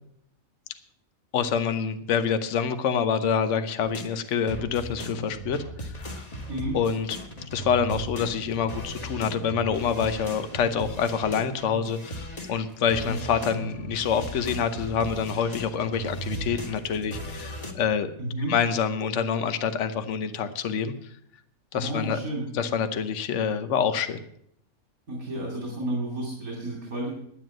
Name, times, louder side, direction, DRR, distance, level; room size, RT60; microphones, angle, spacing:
voice 1, 1.3-6.3 6.7-7.2 7.5-18.1 18.5-20.9 21.7-22.2 22.5-24.2, left 7 dB, 60° left, 10 dB, 1.2 m, -26 dB
sound 1, 3.9-12.6 12.9-17.7, right 1 dB, 30° left, 1.6 m, -37 dB
voice 2, 18.2-18.5 21.7-22.5 25.1-27.1, right 1 dB, 80° right, -1 dB, 3.2 m, -31 dB
10.5 x 9.2 x 7.7 m, 0.72 s
omnidirectional pair, 1.5 m